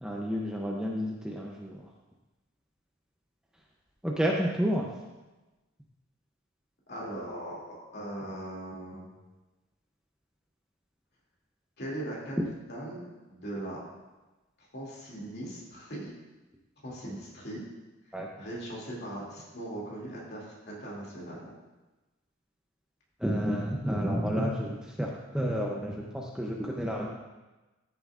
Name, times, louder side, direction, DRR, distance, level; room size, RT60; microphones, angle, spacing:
voice 1, 0.0-1.8 4.0-4.9 18.1-18.3 23.2-27.1, equal, 5° right, -2 dB, 0.6 m, -30 dB
voice 2, 6.9-9.1 11.8-12.4 12.7-13.8 14.6-16.1 16.8-17.6 18.0-21.5, right 1 dB, 50° left, -4 dB, 2.5 m, -39 dB
13.0 x 7.0 x 2.5 m, 1.1 s
head